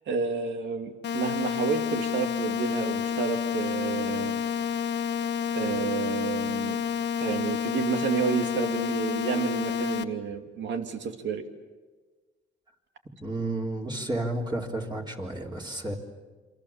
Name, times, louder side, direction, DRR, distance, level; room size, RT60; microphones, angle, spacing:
voice 1, 0.1-4.4 5.5-6.8 7.2-11.4, right 6 dB, 65° right, 6 dB, 2.6 m, -30 dB
sound 1, 1.0-10.0, left 7 dB, 60° left, 1.3 m, -29 dB
voice 2, 13.2-15.9, right 1 dB, 20° right, -1 dB, 3.7 m, -31 dB
28.5 x 25.0 x 7.3 m, 1.4 s
cardioid pair, 90°, 20 cm